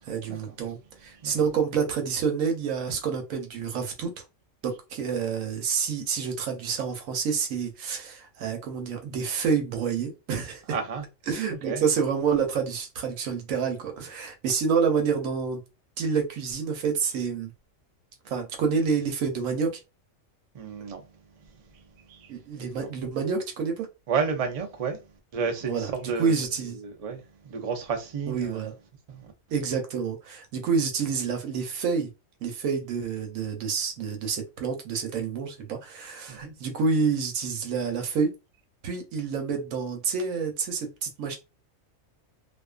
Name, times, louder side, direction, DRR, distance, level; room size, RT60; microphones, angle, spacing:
voice 1, 0.1-4.1 4.6-10.6 11.3-15.6 16.0-17.5 18.3-19.7 22.3-23.9 25.7-26.8 28.3-28.7 29.5-32.1 32.4-38.3 38.8-41.4, right 6 dB, 85° right, 1.1 m, -28 dB
voice 2, 10.7-11.0 11.6-11.8 20.5-21.0 22.1-22.3 22.8-22.9 24.1-25.0 25.3-26.3 26.8-28.7 29.1-29.3 36.3-36.5, right 5 dB, 50° right, 0.4 m, -31 dB
2.5 x 2.3 x 2.3 m
omnidirectional pair, 1.4 m